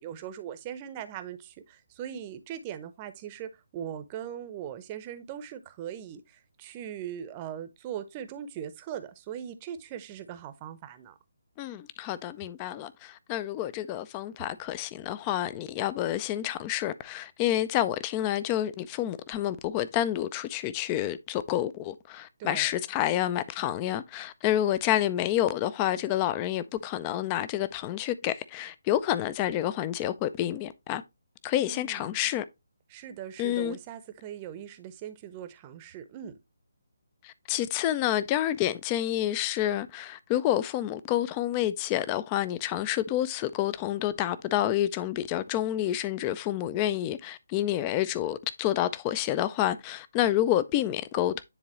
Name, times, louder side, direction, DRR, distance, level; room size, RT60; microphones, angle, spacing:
voice 1, 0.0-11.1 22.4-22.7 31.5-32.1 32.9-36.3, right 9 dB, 25° right, 0.8 m, -40 dB
voice 2, 11.6-31.0 31.4-32.4 33.4-33.8 37.2-51.4, left 12 dB, 20° left, 0.5 m, -29 dB
10.0 x 3.8 x 3.0 m
figure-of-eight pair, 145°, 0 cm